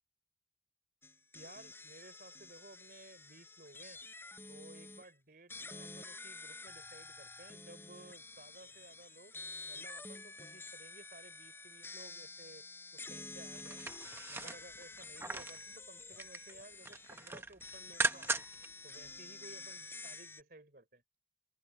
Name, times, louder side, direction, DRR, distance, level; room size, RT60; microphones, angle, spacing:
sound 1, 1.0-5.1 5.5-20.4, left 3 dB, 15° left, 4.4 m, -49 dB
voice 1, 1.3-4.0 4.5-9.4 9.7-12.7 12.9-13.8 14.3-21.0, right 2 dB, 55° right, 3.4 m, -57 dB
sound 2, 13.6-15.6 16.0-16.5 16.8-18.7 19.0-19.1, right 3 dB, 15° right, 0.7 m, -38 dB
open air
head